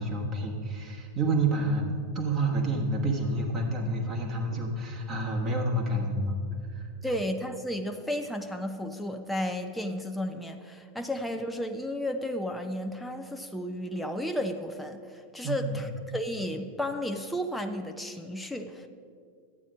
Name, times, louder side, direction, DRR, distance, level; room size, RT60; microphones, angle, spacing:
voice 1, 0.0-6.4 6.7-6.9 15.4-15.8, right 2 dB, 30° right, 0 dB, 1.4 m, -29 dB
voice 2, 7.0-15.0 15.3-18.9, equal, 5° left, 5 dB, 0.6 m, -33 dB
11.0 x 8.5 x 5.3 m, 2.2 s
figure-of-eight pair, 90°, 0 cm